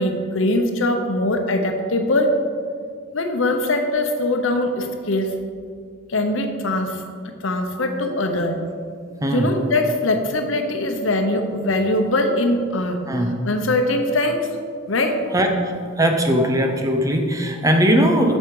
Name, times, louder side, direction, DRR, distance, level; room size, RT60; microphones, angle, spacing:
voice 1, 0.0-2.3 3.1-5.3 6.1-7.0 7.4-8.6 9.3-13.0 13.4-14.5 14.9-15.2, left 1 dB, 80° left, 5 dB, 0.9 m, -21 dB
voice 2, 16.0-18.4, equal, 15° right, 3 dB, 0.7 m, -19 dB
7.9 x 6.4 x 4.8 m, 2.1 s
head